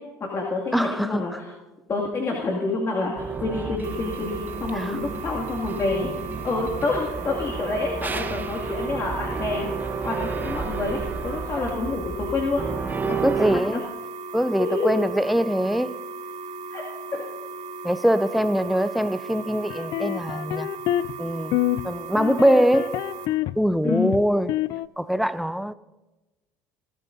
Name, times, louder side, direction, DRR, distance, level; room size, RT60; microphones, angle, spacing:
voice 1, 0.2-1.5 1.9-6.1 6.4-9.7 10.0-12.7 13.1-13.8 14.6-15.0 16.7-16.8 17.1-17.2 23.8-24.1, left 3 dB, 35° left, 2.3 m, -28 dB
voice 2, 0.7-1.4 4.8-4.9 11.7-11.9 13.2-13.8 14.3-16.0 17.8-20.7 21.2-21.6 21.8-23.1 23.6-24.6 25.0-25.7, equal, ahead, 0.5 m, -23 dB
sound 1, 3.2-13.6, right 5 dB, 20° right, 0.9 m, -32 dB
sound 2, 3.8-23.3, right 3 dB, 60° right, 2.4 m, -37 dB
sound 3, 19.7-21.2 21.5-21.9 22.2-23.6 23.9-24.9, left 14 dB, 60° left, 0.3 m, -26 dB
22.0 x 13.0 x 2.7 m
supercardioid pair, 85°, 8 cm